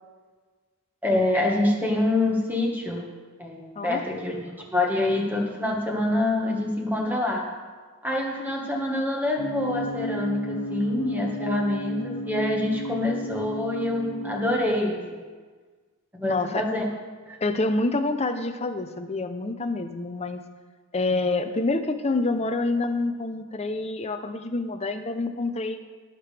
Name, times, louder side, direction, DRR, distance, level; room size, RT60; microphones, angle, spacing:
voice 1, 1.0-3.1 3.4-4.4 4.7-7.4 8.0-15.2 16.1-16.8 17.3-17.4, left 1 dB, 10° right, -1 dB, 1.5 m, -26 dB
sound 1, 9.4-14.6, equal, 55° left, 1.3 m, -33 dB
voice 2, 16.2-16.6 17.4-20.4 20.9-25.8, left 2 dB, 30° left, 8 dB, 0.6 m, -27 dB
17.0 x 6.7 x 3.4 m, 1.5 s
head